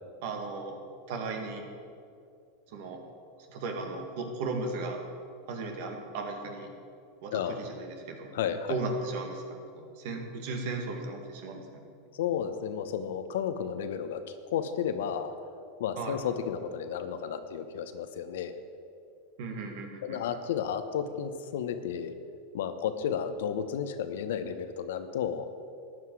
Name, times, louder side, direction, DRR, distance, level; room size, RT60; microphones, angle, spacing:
voice 1, 0.2-0.8 1.1-1.6 2.7-3.0 3.5-5.0 5.5-6.7 7.2-8.3 8.7-11.8 16.0-16.2 19.4-20.2, right 3 dB, 65° right, 2 dB, 2.0 m, -36 dB
voice 2, 8.3-8.8 12.1-14.2 14.5-15.3 15.8-18.6 20.0-22.1 22.5-25.5, left 8 dB, 75° left, 10 dB, 0.9 m, -32 dB
13.5 x 9.5 x 4.8 m, 2.5 s
hypercardioid pair, 100°, 0 cm